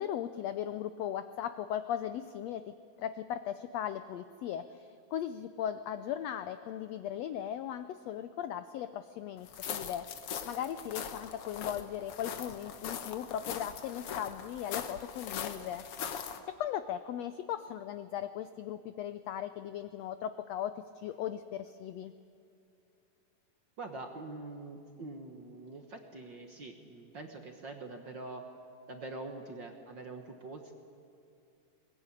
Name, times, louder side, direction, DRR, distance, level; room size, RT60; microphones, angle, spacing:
voice 1, 0.0-15.8 16.5-22.1, left 10 dB, 85° left, 12 dB, 1.5 m, -38 dB
sound 1, 9.5-16.4, left 8 dB, 60° left, 1.7 m, -41 dB
voice 2, 23.8-28.4 28.9-30.7, right 2 dB, 50° right, 4 dB, 1.5 m, -44 dB
21.5 x 20.5 x 9.7 m, 2.5 s
omnidirectional pair, 3.8 m